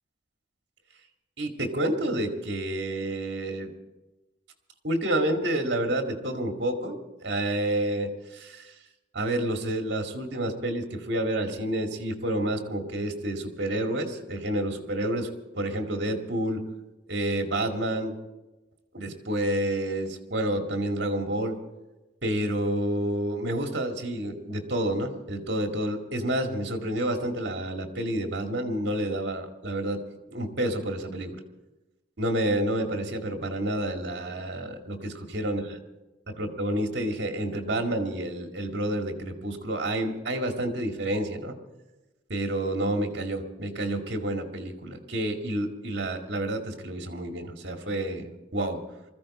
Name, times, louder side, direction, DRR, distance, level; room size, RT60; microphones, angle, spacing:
voice 1, 1.4-3.7 4.8-8.7 9.1-15.3 15.6-16.7 17.1-18.2 18.9-21.6 22.2-30.0 30.3-31.4 32.2-35.6 36.4-41.5 42.3-48.8, right 1 dB, 65° right, 4 dB, 2.1 m, -29 dB
21.0 x 14.5 x 4.3 m, 1.0 s
head